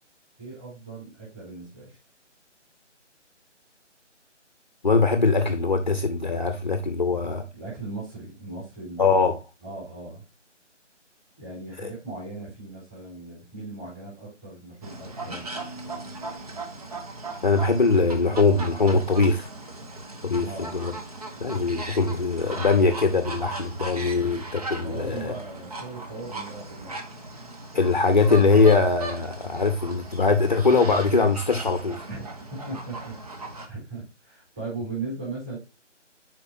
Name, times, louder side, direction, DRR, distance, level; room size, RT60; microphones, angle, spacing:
voice 1, 0.4-2.0 7.5-9.2 9.6-10.2 11.4-15.5 20.4-20.9 24.8-27.0 32.0-35.6, right 3 dB, 15° right, -6 dB, 4.4 m, -38 dB
voice 2, 4.8-7.4 9.0-9.4 11.8-11.9 17.4-19.5 20.2-20.9 21.4-25.3 27.7-32.0, left 4 dB, 40° left, 7 dB, 0.8 m, -22 dB
sound 1, 14.8-33.7, right 2 dB, 30° right, 1.0 m, -38 dB
9.6 x 4.8 x 2.6 m, 0.28 s
figure-of-eight pair, 155°, 37 cm